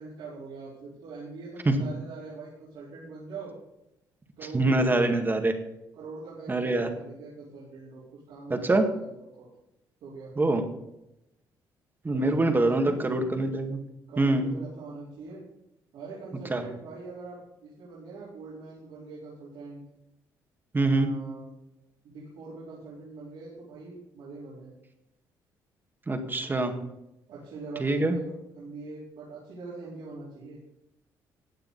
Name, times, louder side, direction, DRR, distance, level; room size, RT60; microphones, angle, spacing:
voice 1, 0.0-3.5 4.4-5.2 5.9-9.5 10.0-10.3 12.1-13.3 14.1-15.4 15.9-19.8 20.8-21.5 22.0-24.7 27.3-30.6, right 3 dB, 85° right, -9 dB, 4.5 m, -43 dB
voice 2, 4.5-5.5 6.5-6.9 8.5-8.9 10.4-10.6 12.0-13.8 14.2-14.5 16.5-16.6 20.7-21.1 26.1-26.7 27.8-28.2, right 2 dB, 25° right, 5 dB, 1.9 m, -24 dB
15.0 x 8.7 x 4.2 m, 0.88 s
cardioid pair, 85°, 8 cm